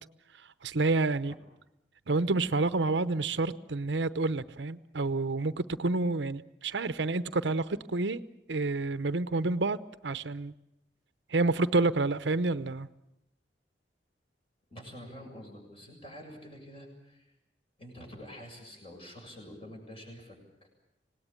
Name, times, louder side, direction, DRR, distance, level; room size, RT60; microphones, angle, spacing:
voice 1, 0.6-1.3 2.1-8.2 8.5-10.5 11.3-12.9, right 3 dB, 80° right, 13 dB, 0.8 m, -29 dB
voice 2, 14.7-17.3 17.8-20.7, equal, 30° left, 2 dB, 7.2 m, -47 dB
26.0 x 18.5 x 8.9 m, 0.86 s
head